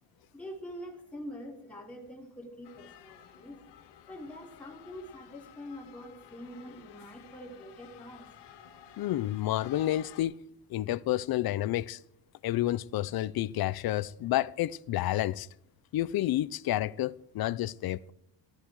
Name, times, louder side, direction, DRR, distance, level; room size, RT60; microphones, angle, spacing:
voice 1, 0.3-3.6 4.1-8.3, equal, 5° left, 4.1 m, -45 dB
sound 1, 2.6-10.2, left 10 dB, 85° left, 2.4 m, -53 dB
voice 2, 9.0-10.3 10.7-12.0 12.4-15.5 15.9-18.1, left 14 dB, 60° left, 0.7 m, -30 dB
15.5 x 13.5 x 4.8 m
cardioid pair, 155°, 41 cm